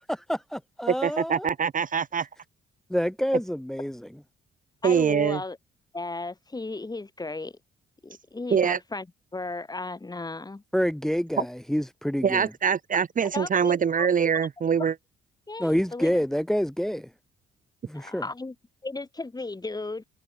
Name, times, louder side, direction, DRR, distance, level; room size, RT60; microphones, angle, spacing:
voice 1, 0.3-1.5 2.9-4.1 10.7-12.5 15.6-17.1 17.9-18.2, equal, ahead, 2.5 m, -27 dB
voice 2, 1.0-2.3 4.8-5.4 8.5-8.8 12.2-14.9, right 7 dB, 40° right, 1.4 m, -24 dB
voice 3, 4.8-5.6 5.9-7.6 8.0-9.1 9.3-10.6 11.4-11.5 13.3-14.1 15.5-16.2 17.9-18.5 18.8-20.0, left 3 dB, 20° left, 6.7 m, -35 dB
cardioid pair, 90°, 20 cm